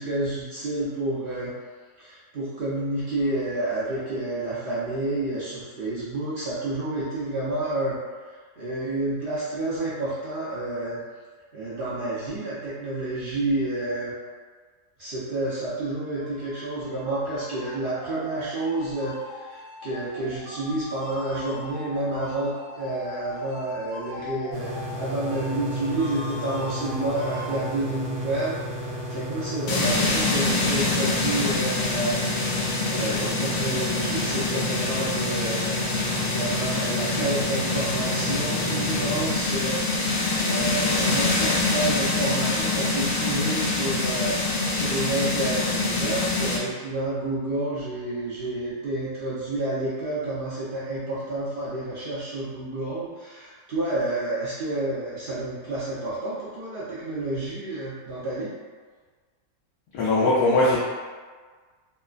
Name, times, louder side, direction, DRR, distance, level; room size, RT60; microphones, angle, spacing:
voice 1, 0.0-1.6 2.0-8.0 8.6-11.0 11.5-14.1 15.0-32.2 32.9-35.7 36.2-58.5, right 2 dB, 55° right, -10 dB, 0.6 m, -29 dB
sound 1, 15.9-27.7, left 2 dB, 70° right, 1.1 m, -40 dB
sound 2, 24.5-39.3, equal, 90° right, 1.1 m, -34 dB
sound 3, 29.7-46.6, left 3 dB, 60° left, 0.7 m, -25 dB
voice 2, 59.9-60.8, left 2 dB, 90° left, -8 dB, 1.1 m, -20 dB
3.0 x 2.1 x 2.4 m, 1.5 s
omnidirectional pair, 1.6 m